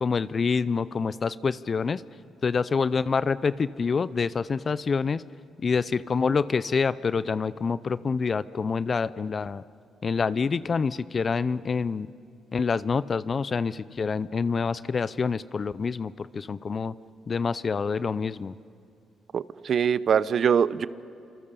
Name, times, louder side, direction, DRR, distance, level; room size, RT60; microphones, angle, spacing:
voice 1, 0.0-2.0 2.4-5.2 5.6-9.6 10.0-12.1 12.5-16.9 17.3-18.5, left 5 dB, 45° left, 17 dB, 0.6 m, -27 dB
voice 2, 19.3-20.9, right 7 dB, 60° right, 17 dB, 0.8 m, -23 dB
30.0 x 26.5 x 7.0 m, 2.4 s
supercardioid pair, 65°, 0 cm